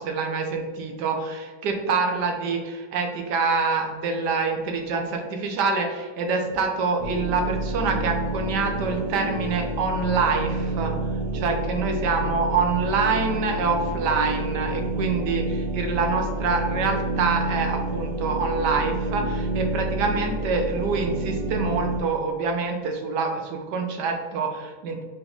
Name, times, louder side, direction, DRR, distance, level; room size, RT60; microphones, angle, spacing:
voice 1, 0.0-10.9 11.3-25.0, right 4 dB, 70° right, 3 dB, 1.2 m, -26 dB
sound 1, 7.0-22.0, right 2 dB, 90° right, 0.6 m, -28 dB
5.0 x 2.5 x 3.1 m, 1.4 s
omnidirectional pair, 2.0 m